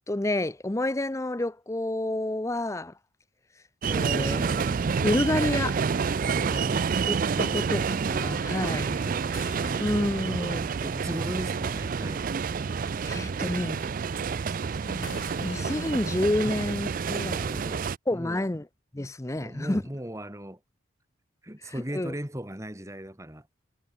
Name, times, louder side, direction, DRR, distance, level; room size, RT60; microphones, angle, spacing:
voice 1, 0.1-2.9 3.8-4.7 5.0-5.8 7.1-8.9 9.8-10.8 13.0-13.8 14.8-17.6 18.1-18.7 18.9-19.8 21.6-22.1, left 1 dB, 15° left, 0.5 m, -29 dB
sound 1, 3.8-18.0, right 5 dB, 45° right, 0.4 m, -28 dB
voice 2, 6.2-6.9 7.3-7.6 8.6-10.5 10.8-12.2 16.4-16.5 17.2-17.8 18.1-18.5 19.4-20.6 21.4-23.5, equal, 15° right, 2.1 m, -38 dB
sound 2, 6.3-17.6, left 3 dB, 75° left, 4.3 m, -49 dB
head